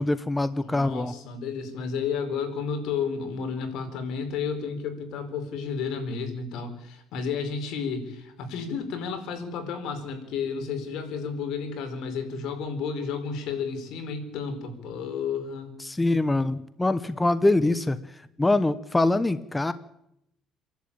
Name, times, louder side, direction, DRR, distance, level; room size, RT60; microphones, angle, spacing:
voice 1, 0.0-1.1 15.8-18.0 18.4-19.7, left 2 dB, 10° left, 13 dB, 0.9 m, -24 dB
voice 2, 0.6-15.8, left 5 dB, 70° left, 6 dB, 5.0 m, -32 dB
28.0 x 11.5 x 8.9 m, 0.81 s
cardioid pair, 110°, 0 cm